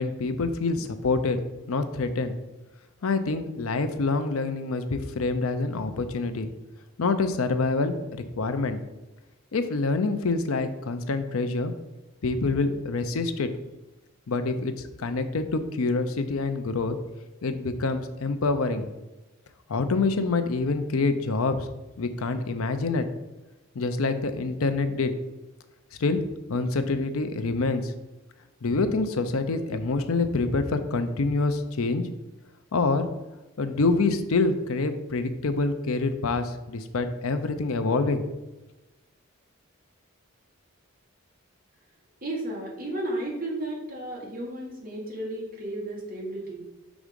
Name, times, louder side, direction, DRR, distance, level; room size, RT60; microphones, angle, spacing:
voice 1, 0.0-1.4 1.7-2.3 3.0-6.5 7.0-8.8 9.5-11.7 12.2-13.5 14.3-14.7 15.0-17.0 17.4-18.9 19.7-21.7 22.0-23.0 23.8-25.1 26.0-26.2 26.5-27.9 28.6-32.1 32.7-33.1 33.6-38.2, left 3 dB, 80° left, 9 dB, 0.6 m, -26 dB
voice 2, 42.2-46.6, right 1 dB, 40° right, -2 dB, 1.7 m, -33 dB
6.1 x 3.6 x 5.2 m, 1.1 s
head